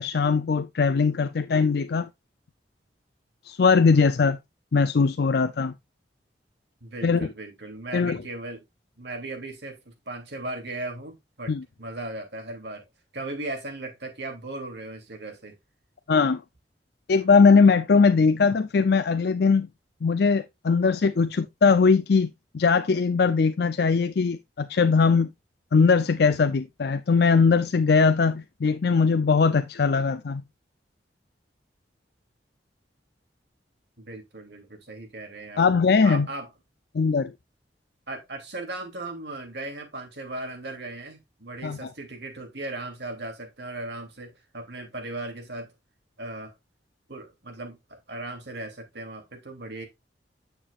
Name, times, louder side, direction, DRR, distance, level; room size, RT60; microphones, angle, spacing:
voice 1, 0.0-2.1 3.5-4.4 4.7-5.7 7.0-7.3 7.9-8.2 11.5-11.6 16.1-16.4 17.1-19.7 20.0-25.3 25.7-30.4 35.6-36.3 36.9-37.3 41.6-41.8, left 5 dB, 65° left, 0.5 m, -20 dB
voice 2, 6.8-8.6 9.0-11.5 11.8-12.9 13.1-15.5 34.0-35.7 36.0-36.5 38.1-45.7 46.2-46.5 47.1-49.8, right 2 dB, 70° right, 2.9 m, -37 dB
8.9 x 6.9 x 2.4 m
head